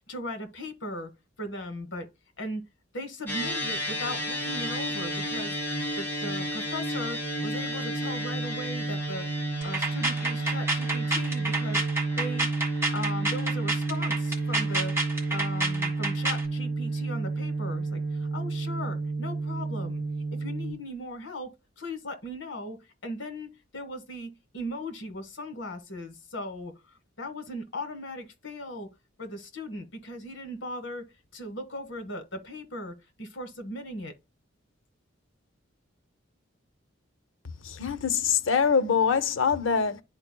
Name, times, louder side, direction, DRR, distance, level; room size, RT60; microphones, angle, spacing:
voice 1, 0.1-1.1 1.4-2.1 2.4-2.6 2.9-5.6 6.0-11.8 12.2-12.5 12.9-15.0 15.3-20.0 20.3-26.7 27.2-28.9 29.2-31.1 31.3-34.1, left 1 dB, 65° left, 1.3 m, -38 dB
sound 1, 3.3-20.7, right 2 dB, 10° left, 1.5 m, -31 dB
sound 2, 9.6-16.5, right 2 dB, 15° right, 1.6 m, -29 dB
voice 2, 37.6-40.0, left 6 dB, 85° left, 0.7 m, -24 dB
11.0 x 4.4 x 2.2 m
head